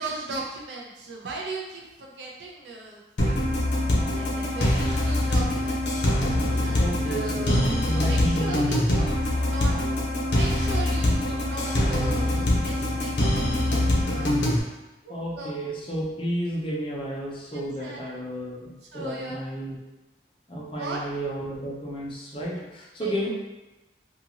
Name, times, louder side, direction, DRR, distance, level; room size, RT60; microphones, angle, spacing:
voice 1, 0.0-3.7 4.1-6.0 6.6-7.6 7.9-9.8 10.3-13.4 14.1-14.7 15.0-15.5 17.5-18.0 18.9-19.4 20.8-21.0 22.6-22.7 23.0-23.1, right 3 dB, 80° right, -2 dB, 0.6 m, -37 dB
sound 1, 3.2-14.6, left 1 dB, 85° left, 0.6 m, -24 dB
voice 2, 6.8-9.1 15.1-19.8 20.5-23.3, right 1 dB, 30° left, -4 dB, 0.6 m, -32 dB
2.8 x 2.4 x 2.8 m, 1.1 s
head